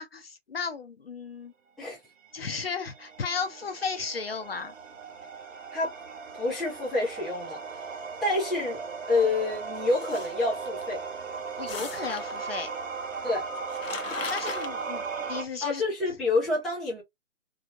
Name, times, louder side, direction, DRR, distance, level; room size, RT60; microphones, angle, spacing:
voice 1, 0.0-1.5 2.3-4.7 11.6-12.7 14.3-15.8, left 5 dB, 50° left, 0.6 m, -34 dB
sound 1, 2.2-15.4, right 5 dB, 80° right, 0.9 m, -37 dB
voice 2, 6.4-7.6 8.2-11.0 13.2-13.5 15.6-17.0, left 2 dB, ahead, 0.4 m, -28 dB
sound 2, 9.9-10.8 11.6-12.6 13.3-13.4 13.5-14.7, left 6 dB, 90° left, 0.8 m, -38 dB
2.5 x 2.4 x 2.8 m
hypercardioid pair, 170°, 38 cm